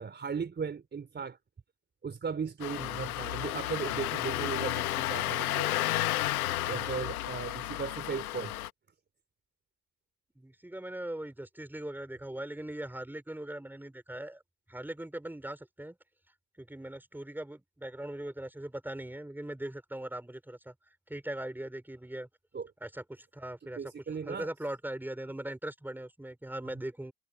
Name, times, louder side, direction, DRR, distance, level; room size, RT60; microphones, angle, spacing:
voice 1, 0.0-1.4 2.0-5.7 6.7-8.5 22.5-22.7 23.8-24.5, right 6 dB, 25° right, 3.9 m, -37 dB
Engine starting, 2.6-8.7, left 16 dB, 80° left, 1.7 m, -32 dB
voice 2, 2.7-3.1 10.4-14.4 14.7-16.0 16.6-20.7 21.1-22.3 22.8-23.8 24.2-27.1, right 1 dB, 5° right, 5.7 m, -40 dB
hypercardioid pair, 85°, 43 cm